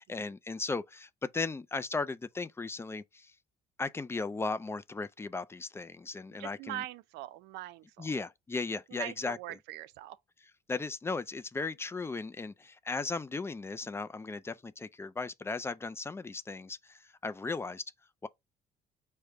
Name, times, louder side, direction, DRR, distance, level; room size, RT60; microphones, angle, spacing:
voice 1, 0.0-3.3 3.8-6.8 8.0-9.4 10.7-17.8 18.2-18.3, left 3 dB, 15° left, 0.3 m, -36 dB
voice 2, 6.4-8.1 8.9-10.2, right 14 dB, 85° right, 0.4 m, -42 dB
4.9 x 2.1 x 4.4 m
cardioid pair, 110°, 17 cm